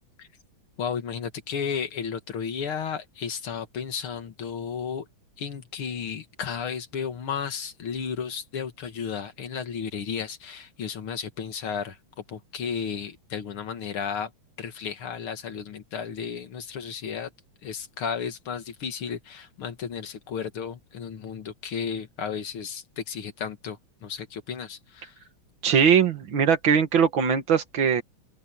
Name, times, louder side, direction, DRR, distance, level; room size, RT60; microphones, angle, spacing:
voice 1, 0.8-5.1 5.4-14.3 14.6-17.3 17.6-25.2, left 7 dB, 85° left, 2.7 m, -33 dB
voice 2, 25.6-28.0, right 7 dB, 65° right, 2.5 m, -21 dB
open air
omnidirectional pair, 2.3 m